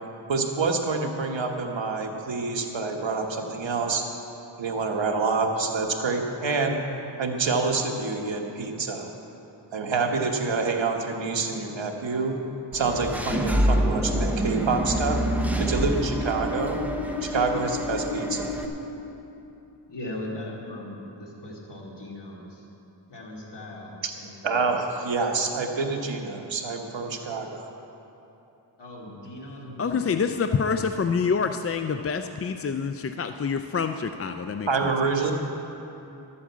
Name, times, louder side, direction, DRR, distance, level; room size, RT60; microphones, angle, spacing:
voice 1, 0.3-4.0 4.6-6.8 7.2-9.1 9.7-12.4 12.7-15.2 15.6-16.8 17.2-18.5 24.4-27.7 34.7-35.3, right 4 dB, 85° right, 3 dB, 1.2 m, -27 dB
Engine / Mechanisms, 12.7-18.6, equal, 5° right, 0.8 m, -26 dB
voice 2, 19.9-22.7 23.1-24.7 28.8-30.6, left 1 dB, 70° left, -3 dB, 2.6 m, -39 dB
voice 3, 29.8-34.9, left 5 dB, 35° left, 7 dB, 0.4 m, -27 dB
12.5 x 8.6 x 7.3 m, 2.9 s
wide cardioid pair, 100°, 44 cm